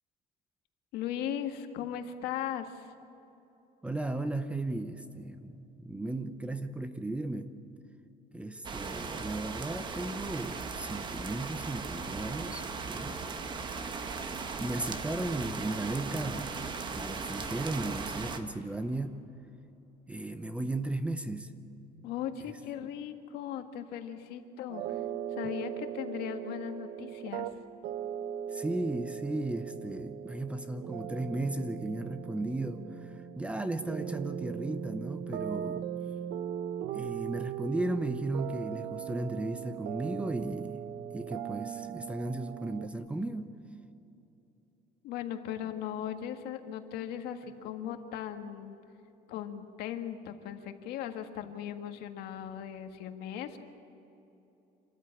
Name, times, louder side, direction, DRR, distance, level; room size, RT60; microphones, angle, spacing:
voice 1, 0.9-2.9 22.0-25.0 25.4-27.5 45.0-48.7 49.3-53.6, left 10 dB, 75° left, 7 dB, 1.7 m, -38 dB
voice 2, 3.8-7.5 8.3-13.2 14.6-19.2 20.1-21.5 28.5-35.9 36.9-40.8 41.1-43.5, right 2 dB, 5° right, 10 dB, 0.7 m, -35 dB
sound 1, 8.6-18.4, right 4 dB, 30° right, 1.3 m, -38 dB
sound 2, 24.7-42.9, right 9 dB, 60° right, 0.8 m, -39 dB
26.5 x 13.5 x 9.9 m, 3.0 s
cardioid pair, 165°, 16 cm